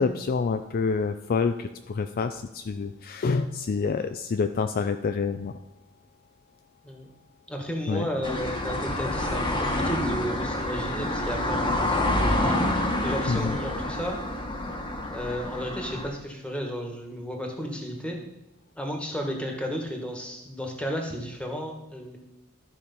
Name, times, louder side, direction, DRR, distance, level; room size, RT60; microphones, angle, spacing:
voice 1, 0.0-5.6 7.9-8.1 13.3-13.6, left 4 dB, 40° left, 9 dB, 0.4 m, -27 dB
voice 2, 7.5-12.5 13.0-14.1 15.1-18.2 18.8-22.2, equal, 5° left, 2 dB, 1.5 m, -33 dB
sound 1, 8.2-16.1, left 1 dB, 20° left, 1.2 m, -28 dB
13.0 x 5.1 x 5.4 m, 0.92 s
head